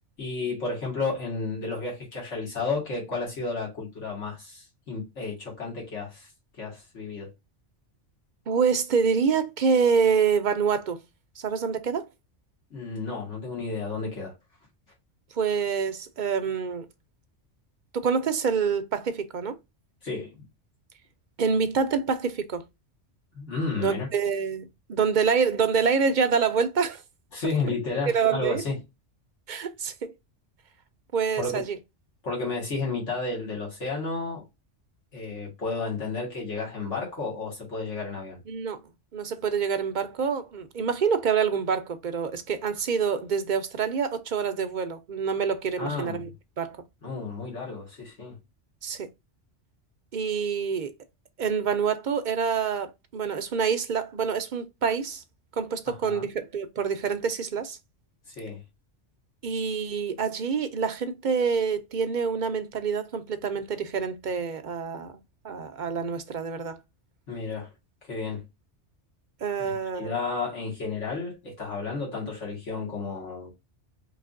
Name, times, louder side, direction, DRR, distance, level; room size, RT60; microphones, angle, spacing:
voice 1, 0.2-6.3 6.6-7.3 12.7-14.3 20.0-20.3 23.3-24.1 27.3-28.7 31.4-31.6 32.2-34.4 35.1-38.4 45.8-46.3 47.0-48.4 55.9-56.3 58.3-58.6 67.3-67.7 68.0-68.4 69.7-73.5, left 3 dB, 75° left, 2.0 m, -32 dB
voice 2, 8.5-11.0 11.4-12.1 15.4-16.9 17.9-19.6 21.4-22.6 23.8-27.0 28.1-28.6 29.5-30.1 31.1-31.8 38.5-38.8 39.1-46.3 46.6-46.8 48.8-49.1 50.1-50.9 51.4-55.2 55.6-57.8 59.4-66.8 69.4-70.2, right 6 dB, 55° right, 0.6 m, -26 dB
4.8 x 3.3 x 2.5 m
omnidirectional pair, 1.2 m